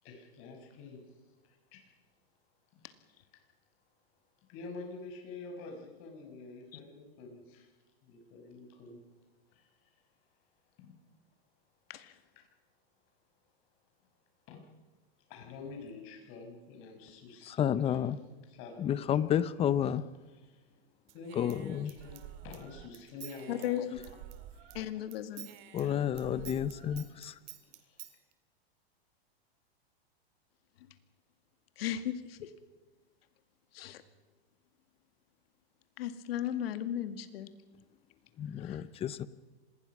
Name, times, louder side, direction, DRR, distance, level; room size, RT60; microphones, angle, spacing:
voice 1, 0.0-1.9 2.7-2.9 4.5-7.7 8.0-9.0 9.5-10.0 10.8-10.9 12.4-12.5 14.5-14.6 15.3-18.1 18.5-19.2 19.5-19.7 20.3-20.7 21.1-24.0 24.5-24.7 25.8-28.1, left 3 dB, 40° left, 3 dB, 6.1 m, -48 dB
voice 2, 17.5-18.2 18.8-20.0 21.4-21.9 25.7-27.3 38.4-39.3, left 9 dB, 20° left, 17 dB, 0.7 m, -30 dB
Human voice / Scissors, 21.1-24.8 25.1-28.1, right 13 dB, 45° right, 2.4 m, -49 dB
voice 3, 23.5-24.2 24.7-25.5 31.8-32.5 33.7-34.0 36.0-37.5 38.6-38.9, left 11 dB, 70° left, 10 dB, 2.1 m, -36 dB
26.0 x 20.0 x 6.1 m, 1.2 s
supercardioid pair, 140°, 31 cm